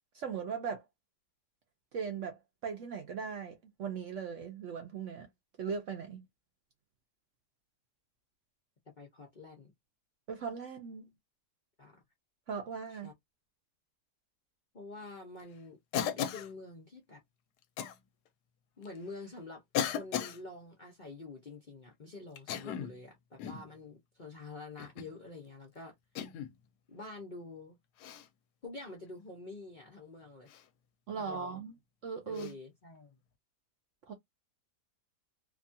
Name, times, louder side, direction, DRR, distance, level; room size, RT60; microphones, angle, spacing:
voice 1, 0.1-0.8 1.9-5.3 5.6-6.2 10.3-11.1 12.5-13.1 31.1-31.7 32.0-32.5 34.1-34.2, right 6 dB, 65° right, 0.8 m, -39 dB
voice 2, 9.0-9.7 11.8-12.0 12.9-13.1 14.7-17.2 18.8-19.6 19.9-25.9 26.9-27.8 28.6-30.5 31.1-31.6 32.3-33.2, left 3 dB, 45° left, 0.6 m, -47 dB
Cough, 15.9-16.5 17.8-18.0 18.9-19.0 19.7-20.4 22.4-23.0 23.4-23.7 24.8-25.1 26.2-26.5 28.0-28.3 30.5-30.6 32.3-32.5, left 9 dB, 75° left, 1.1 m, -36 dB
2.8 x 2.3 x 2.6 m
omnidirectional pair, 1.8 m